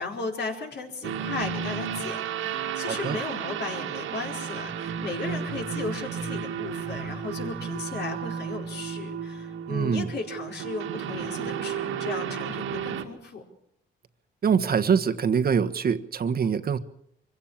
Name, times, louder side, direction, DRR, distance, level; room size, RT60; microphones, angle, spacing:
voice 1, 0.0-13.4, left 3 dB, 60° left, 1 dB, 4.7 m, -35 dB
sound 1, 1.0-13.0, right 7 dB, 85° right, 2.3 m, -33 dB
voice 2, 2.9-3.2 9.7-10.1 14.4-16.8, right 6 dB, 50° right, 9 dB, 1.4 m, -24 dB
24.0 x 16.5 x 7.4 m, 0.75 s
cardioid pair, 90°, 20 cm